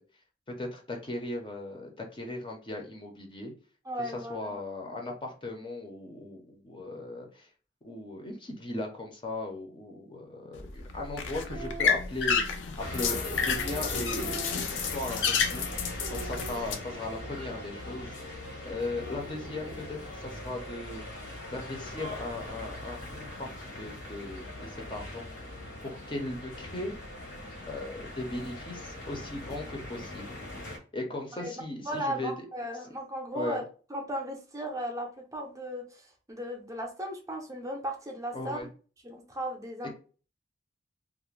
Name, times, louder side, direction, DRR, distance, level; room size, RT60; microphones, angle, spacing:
voice 1, 0.5-3.5 4.0-7.5 7.8-18.1 18.6-21.0 21.5-25.3 25.8-26.9 27.7-30.3 30.9-32.5 33.3-33.6 38.3-38.7 39.8-39.9, left 2 dB, 30° left, 2 dB, 0.5 m, -38 dB
voice 2, 3.9-4.6 4.9-5.1 31.4-31.5 31.9-33.6 33.9-38.6 39.0-39.9, equal, 20° right, 1 dB, 0.5 m, -36 dB
sound 1, 10.5-16.7, left 6 dB, 85° left, 0.4 m, -30 dB
sound 2, 11.4-12.0 12.7-15.7 16.0-17.5 18.7-20.1, right 3 dB, 65° right, 0.4 m, -44 dB
sound 3, 12.8-30.8, left 1 dB, 70° left, 0.8 m, -41 dB
2.4 x 2.0 x 3.1 m, 0.37 s
head